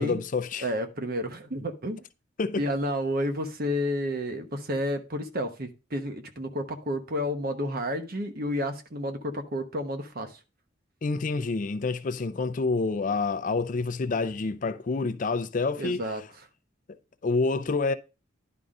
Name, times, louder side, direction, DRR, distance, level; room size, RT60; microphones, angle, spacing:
voice 1, 0.0-0.7 2.4-2.6 11.0-16.0 17.2-17.9, left 3 dB, 40° left, 0.4 m, -28 dB
voice 2, 0.6-2.0 2.6-10.4 15.8-16.5, equal, 50° right, 1.0 m, -31 dB
10.5 x 3.7 x 5.3 m
head